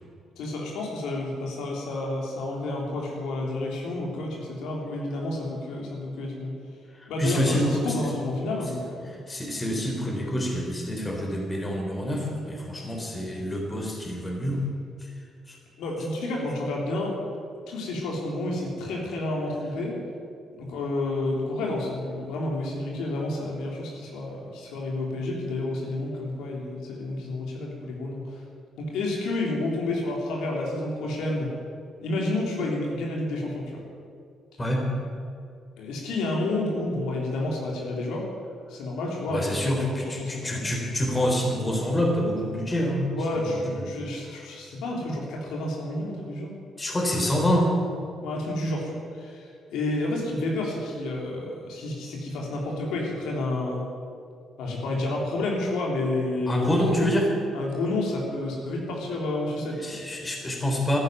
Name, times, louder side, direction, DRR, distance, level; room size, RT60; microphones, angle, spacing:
voice 1, 0.4-6.5 7.1-9.2 15.8-17.2 17.7-19.9 20.6-28.4 28.8-31.5 32.0-33.8 35.8-38.3 38.7-40.7 43.1-46.5 48.2-53.9 54.6-57.1 57.5-60.0, left 2 dB, 90° left, -1 dB, 3.4 m, -30 dB
voice 2, 6.9-8.0 9.1-14.7 15.0-15.1 15.5-15.6 34.6-34.9 39.3-43.5 46.8-47.8 56.5-57.3 59.8-61.0, equal, 20° left, 1 dB, 3.9 m, -26 dB
14.0 x 10.5 x 9.3 m, 2.4 s
cardioid pair, 90°, 0 cm